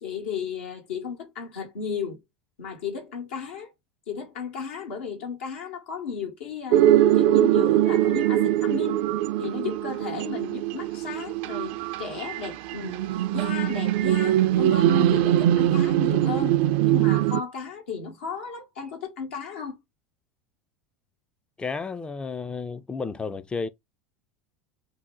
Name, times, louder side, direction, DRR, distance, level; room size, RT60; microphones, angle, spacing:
voice 1, 0.0-2.2 2.6-3.7 4.1-6.8 7.2-9.0 9.4-13.0 13.3-16.6 16.8-19.8, left 6 dB, 85° left, 1.2 m, -34 dB
sound 1, 6.7-17.4, right 12 dB, 65° right, 0.3 m, -22 dB
voice 2, 21.6-23.7, left 4 dB, 15° left, 0.3 m, -32 dB
2.7 x 2.1 x 3.7 m
hypercardioid pair, 100°, 6 cm